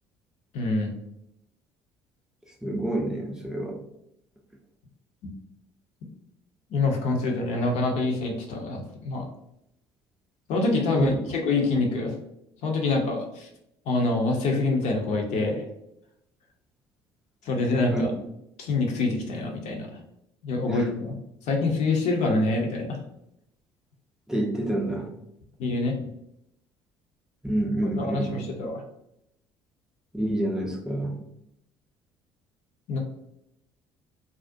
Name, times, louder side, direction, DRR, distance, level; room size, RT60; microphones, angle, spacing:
voice 1, 0.5-0.9 5.2-5.3 6.7-9.3 10.5-12.1 12.6-13.5 13.9-15.6 17.5-18.1 18.6-19.9 20.4-21.2 21.5-23.0 25.6-26.0 27.9-28.8 32.9-33.0, left 3 dB, 60° left, 1 dB, 0.6 m, -26 dB
voice 2, 2.6-3.8 11.0-11.1 17.9-18.1 20.7-20.8 24.3-25.1 27.4-28.4 30.1-31.2, right 1 dB, 5° right, -1 dB, 0.5 m, -28 dB
2.4 x 2.0 x 2.5 m, 0.81 s
hypercardioid pair, 55°, 13 cm